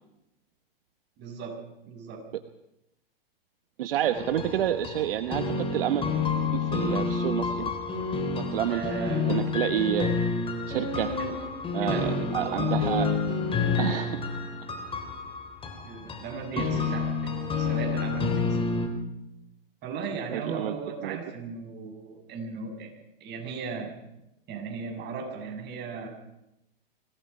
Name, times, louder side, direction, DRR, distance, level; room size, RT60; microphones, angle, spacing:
voice 1, 1.2-1.6 1.9-2.2 4.0-4.3 8.7-9.6 11.2-11.4 11.8-12.9 15.8-18.7 19.8-22.9 23.2-23.9 24.5-26.1, right 5 dB, 35° right, 2 dB, 7.0 m, -37 dB
voice 2, 3.8-6.1 6.5-7.8 8.3-8.8 9.3-10.2 10.7-11.1 11.7-13.2 13.8-14.2 16.5-16.8 20.3-20.7 21.0-21.2, right 11 dB, 70° right, 9 dB, 1.2 m, -29 dB
sound 1, 4.1-18.9, left 4 dB, 20° left, 3.3 m, -29 dB
25.0 x 18.0 x 5.7 m, 0.87 s
hypercardioid pair, 115°, 30 cm